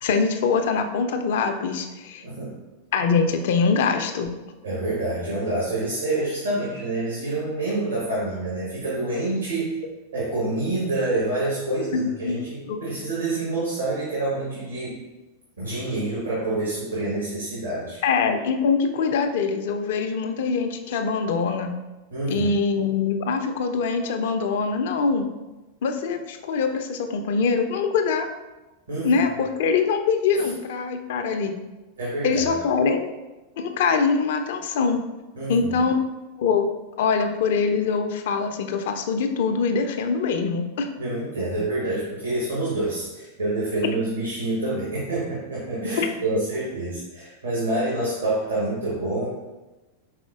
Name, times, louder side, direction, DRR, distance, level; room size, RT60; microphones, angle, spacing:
voice 1, 0.0-2.2 2.9-4.3 11.9-12.4 12.7-12.8 18.0-21.8 22.3-25.3 25.8-28.3 29.0-31.6 32.2-33.1 33.6-35.0 35.5-36.0 36.4-36.7 37.0-40.9 46.0-46.1, left 5 dB, 55° left, 6 dB, 0.4 m, -23 dB
voice 2, 2.2-2.5 4.6-9.7 10.1-15.0 15.6-18.0 22.1-22.5 28.9-29.1 30.4-30.5 32.0-32.5 35.4-35.8 41.0-49.3, right 2 dB, 75° right, -7 dB, 1.2 m, -27 dB
4.9 x 3.7 x 2.4 m, 1.1 s
figure-of-eight pair, 90°, 0 cm